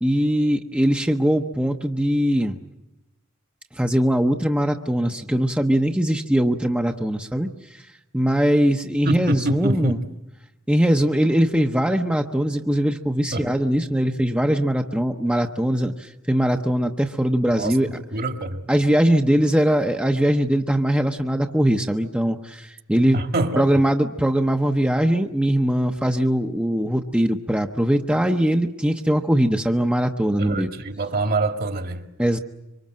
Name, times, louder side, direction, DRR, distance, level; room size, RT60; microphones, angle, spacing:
voice 1, 0.0-2.6 3.7-7.9 8.1-10.0 10.7-18.0 18.7-23.2 23.6-30.7 32.2-32.4, equal, 5° right, 0.9 m, -21 dB
voice 2, 9.0-10.1 13.3-13.5 17.5-18.6 23.1-23.7 30.3-32.0, right 2 dB, 45° right, 1.8 m, -25 dB
26.0 x 24.5 x 7.6 m
head